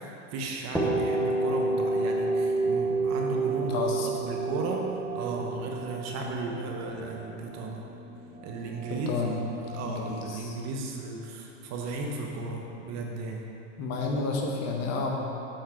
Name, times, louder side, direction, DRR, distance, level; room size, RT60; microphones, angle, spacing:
voice 1, 0.0-3.8 4.0-4.9 5.1-7.9 8.4-9.2 9.6-13.5, right 3 dB, 45° right, 0 dB, 1.1 m, -35 dB
sound 1, 0.7-8.5, right 3 dB, ahead, 1.0 m, -29 dB
sound 2, 1.1-10.4, right 6 dB, 25° right, 0.5 m, -45 dB
voice 2, 3.7-4.1 8.9-9.4 9.8-10.5 13.8-15.1, left 3 dB, 45° left, 0 dB, 1.3 m, -30 dB
7.7 x 4.9 x 4.4 m, 2.8 s
hypercardioid pair, 105°, 37 cm